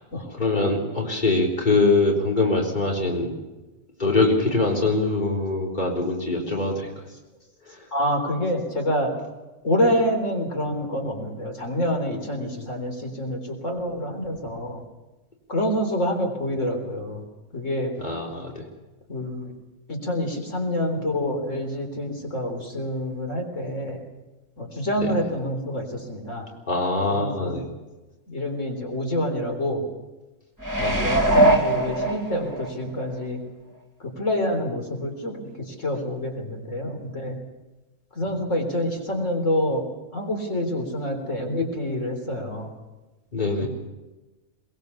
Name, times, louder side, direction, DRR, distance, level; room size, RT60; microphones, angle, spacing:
voice 1, 0.1-3.3 4.0-6.9 7.7-7.8 12.6-12.7 18.0-18.5 25.0-25.2 26.7-27.7 30.8-31.2 43.3-43.7, left 3 dB, 40° left, -1 dB, 3.9 m, -23 dB
voice 2, 7.9-9.1 9.6-14.8 15.5-17.2 17.5-17.9 19.1-19.5 19.9-24.0 24.6-26.5 27.1-27.6 28.3-29.8 31.0-33.4 34.2-35.3 35.8-37.4 38.2-39.8 40.1-42.7 43.6-43.7, equal, 85° left, 3 dB, 4.3 m, -27 dB
sound 1, 30.6-32.7 33.2-33.3, right 1 dB, 15° right, 2.9 m, -21 dB
22.5 x 21.5 x 7.1 m, 1.1 s
omnidirectional pair, 1.3 m